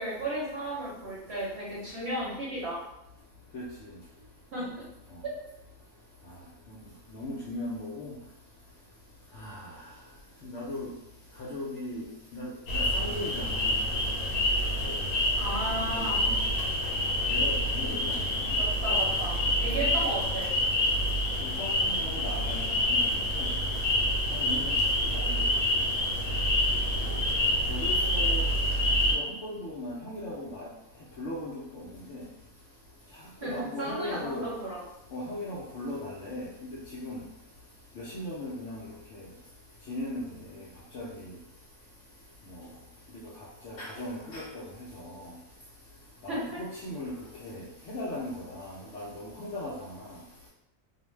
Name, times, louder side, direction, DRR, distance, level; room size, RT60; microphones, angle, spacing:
voice 1, 0.0-2.8 4.5-4.7 5.2-5.4 15.4-16.2 18.6-20.5 33.4-34.8 46.3-46.6, right 1 dB, 55° right, -6 dB, 0.8 m, -34 dB
voice 2, 7.1-8.1 9.4-9.6 10.4-10.9 11.4-12.1 12.3-13.7 14.8-14.9 15.8-16.4 17.3-18.1 19.7-19.9 21.4-23.0 23.3-23.5 24.3-24.7 25.1-25.4 27.7-28.4 29.1-30.7 31.2-31.6 32.1-32.2 33.4-34.5 35.1-36.5 37.0-37.2 38.0-38.8 39.9-40.2 40.9-41.1 43.6-44.6 46.2-46.4 46.8-47.1 47.4-49.7, left 1 dB, 70° left, -5 dB, 0.7 m, -37 dB
sound 1, 12.7-29.2, left 1 dB, 85° left, 1.1 m, -27 dB
2.5 x 2.1 x 3.1 m, 0.88 s
omnidirectional pair, 1.6 m